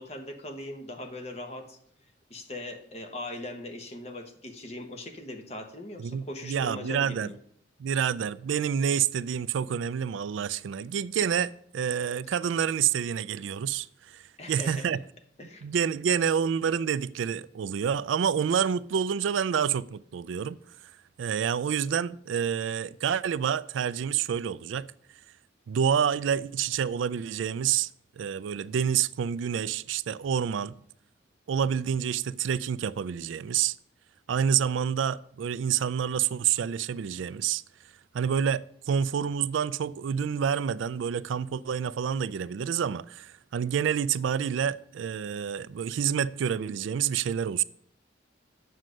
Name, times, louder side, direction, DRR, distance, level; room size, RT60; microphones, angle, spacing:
voice 1, 0.0-1.8 2.3-7.4 14.4-14.9 15.4-15.7, left 1 dB, 35° left, 1.1 m, -40 dB
voice 2, 6.0-7.3 7.8-15.0 15.6-20.6 21.2-24.9 25.7-27.9 28.2-30.7 31.5-33.7 34.3-37.6 38.1-47.6, right 8 dB, 80° right, 0.3 m, -28 dB
7.5 x 6.4 x 6.3 m
head